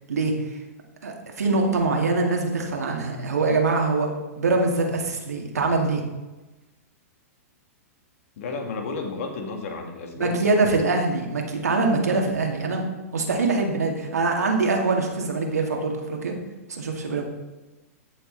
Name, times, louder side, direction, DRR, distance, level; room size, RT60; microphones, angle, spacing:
voice 1, 1.0-4.1 4.4-6.0 10.2-12.9 13.1-16.4 16.7-17.2, right 3 dB, 90° right, 1 dB, 2.2 m, -23 dB
voice 2, 8.4-10.4, left 4 dB, 65° left, 3 dB, 2.4 m, -32 dB
14.5 x 6.7 x 4.0 m, 1.1 s
hypercardioid pair, 120°, 8 cm